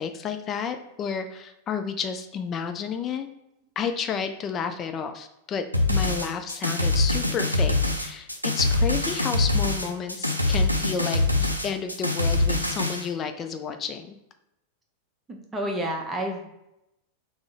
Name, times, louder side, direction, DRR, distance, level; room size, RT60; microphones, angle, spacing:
voice 1, 0.0-3.3 3.8-14.2, left 6 dB, 30° left, 8 dB, 0.3 m, -31 dB
sound 1, 5.7-13.0, left 2 dB, 90° right, 0.3 m, -24 dB
voice 2, 15.3-16.5, right 1 dB, 15° right, 2 dB, 0.6 m, -30 dB
3.7 x 2.0 x 3.6 m, 0.87 s
figure-of-eight pair, 90°, 0 cm